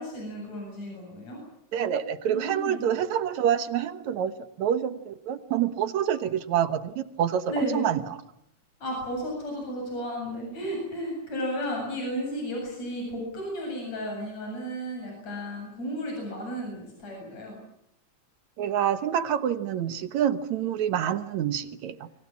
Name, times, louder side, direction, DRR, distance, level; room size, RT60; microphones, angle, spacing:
voice 1, 0.0-1.4 2.3-2.9 7.5-7.9 8.8-17.6, equal, 55° left, -1 dB, 9.2 m, -33 dB
voice 2, 1.7-4.3 4.6-8.0 18.6-22.0, right 9 dB, 65° right, 12 dB, 2.4 m, -27 dB
29.0 x 24.5 x 7.4 m, 0.78 s
omnidirectional pair, 3.7 m